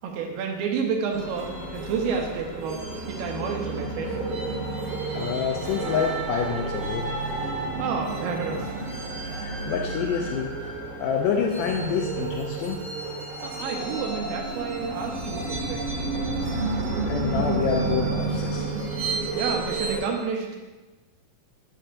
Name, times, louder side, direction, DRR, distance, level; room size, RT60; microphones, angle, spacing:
voice 1, 0.0-4.2 7.8-8.7 13.4-16.1 19.3-20.5, right 5 dB, 75° right, 2 dB, 2.6 m, -30 dB
sound 1, 1.1-20.0, right 3 dB, 60° right, 2.9 m, -30 dB
voice 2, 5.1-7.1 9.3-10.5 11.0-12.8 17.0-18.6, left 7 dB, 85° left, 2 dB, 1.9 m, -27 dB
8.4 x 7.6 x 2.6 m, 1.2 s
omnidirectional pair, 4.3 m